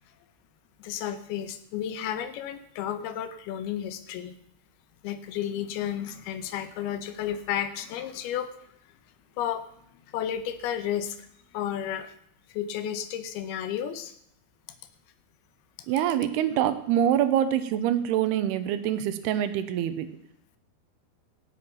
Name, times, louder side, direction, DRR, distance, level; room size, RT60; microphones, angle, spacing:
voice 1, 0.8-4.4 5.0-8.5 9.4-9.6 10.1-11.3 11.5-12.1 12.5-14.1, left 10 dB, 75° left, 11 dB, 2.7 m, -32 dB
voice 2, 15.9-20.1, right 10 dB, 80° right, 11 dB, 2.7 m, -25 dB
16.5 x 7.9 x 5.7 m, 0.72 s
omnidirectional pair, 4.8 m